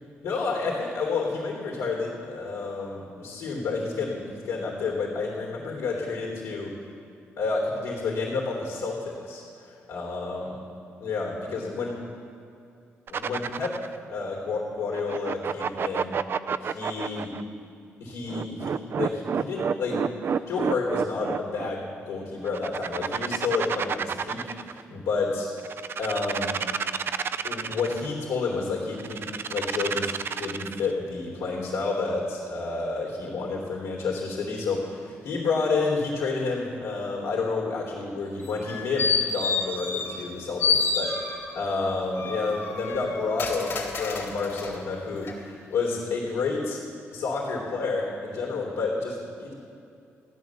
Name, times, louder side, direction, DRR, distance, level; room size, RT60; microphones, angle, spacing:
voice 1, 0.2-6.7 7.4-10.6 11.0-12.0 13.1-16.1 16.6-17.3 18.0-25.5 26.0-26.6 27.4-30.1 30.4-46.8 47.1-49.5, left 4 dB, 90° left, -3 dB, 3.3 m, -30 dB
sound 1, 13.1-14.0 14.9-17.4 18.3-21.7 22.4-24.8 25.6-28.1 29.0-30.9, right 6 dB, 55° right, 0.5 m, -29 dB
sound 2, 38.4-40.3 40.6-41.6 42.1-44.7 45.2-45.3, left 5 dB, 60° left, 2.8 m, -28 dB
15.0 x 10.5 x 7.2 m, 2.5 s
cardioid pair, 85°, 5 cm